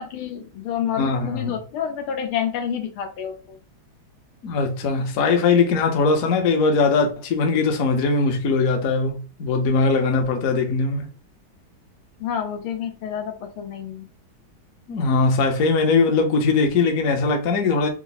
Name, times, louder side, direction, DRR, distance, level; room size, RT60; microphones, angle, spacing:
voice 1, 0.0-3.6 12.2-14.1, left 8 dB, 90° left, 1.7 m, -29 dB
voice 2, 1.0-1.6 4.4-11.1 14.9-17.9, left 4 dB, 60° left, 0.9 m, -20 dB
4.5 x 2.0 x 4.0 m
omnidirectional pair, 2.3 m